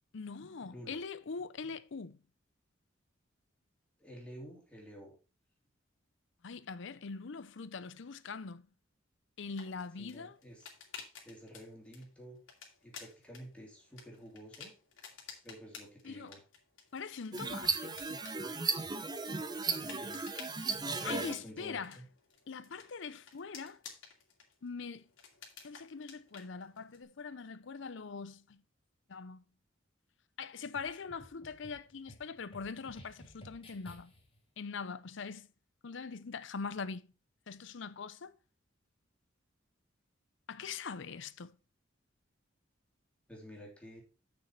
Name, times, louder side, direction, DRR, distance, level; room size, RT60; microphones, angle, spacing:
voice 1, 0.1-2.2 6.4-8.7 9.4-10.4 16.0-16.3 16.9-18.0 21.0-22.0 22.5-23.8 24.6-25.1 25.6-28.6 29.1-29.4 30.4-34.1 34.6-35.5 35.8-37.1 37.5-38.3 40.5-41.6, left 5 dB, 70° left, 0.6 m, -42 dB
voice 2, 4.0-5.1 10.0-10.7 11.2-12.4 12.8-14.7 15.1-15.2 15.4-16.4 19.5-22.0 43.3-44.0, equal, 5° left, 3.2 m, -51 dB
sound 1, 9.5-27.0, left 6 dB, 85° left, 2.5 m, -54 dB
sound 2, 17.3-21.4, right 4 dB, 20° right, 0.7 m, -35 dB
sound 3, 30.7-34.4, equal, 30° left, 2.9 m, -56 dB
8.2 x 6.5 x 4.4 m
head